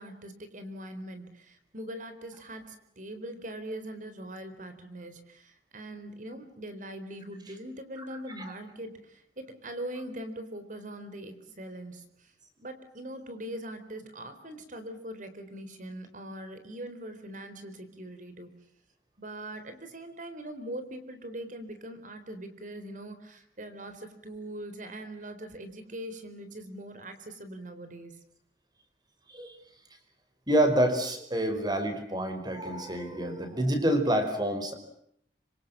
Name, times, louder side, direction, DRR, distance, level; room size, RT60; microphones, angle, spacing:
voice 1, 0.0-12.3 12.6-18.5 19.2-28.2, right 1 dB, 45° right, 10 dB, 4.0 m, -42 dB
voice 2, 30.5-34.7, right 1 dB, 25° right, 8 dB, 5.0 m, -27 dB
25.5 x 25.5 x 7.5 m, 0.73 s
head